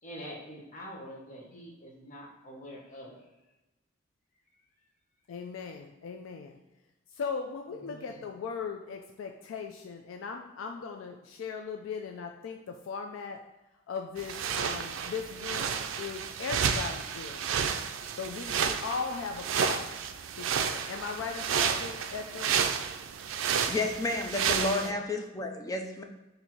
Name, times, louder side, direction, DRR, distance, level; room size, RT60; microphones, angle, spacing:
voice 1, 0.0-3.2 7.7-8.2, equal, 40° left, -2 dB, 1.0 m, -45 dB
voice 2, 5.3-6.6 7.1-13.4 13.9-17.4 18.2-19.9 20.4-22.6 24.6-24.9, left 5 dB, 90° left, 4 dB, 0.4 m, -38 dB
sound 1, 14.2-24.9, right 7 dB, 80° right, 0.3 m, -31 dB
voice 3, 23.7-26.0, left 2 dB, 20° left, 4 dB, 0.4 m, -31 dB
4.0 x 2.7 x 4.4 m, 1.0 s
head